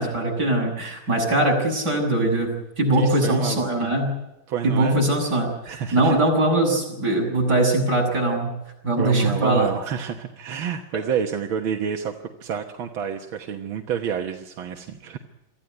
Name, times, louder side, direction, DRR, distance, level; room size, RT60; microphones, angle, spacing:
voice 1, 0.0-4.1 4.6-8.5 8.8-9.7, right 1 dB, 55° right, 0 dB, 7.5 m, -21 dB
voice 2, 3.0-3.9 4.5-5.0 5.7-6.2 9.0-12.1 12.4-15.2, right 8 dB, 90° right, 4 dB, 2.1 m, -29 dB
25.0 x 15.0 x 9.4 m, 0.95 s
omnidirectional pair, 2.1 m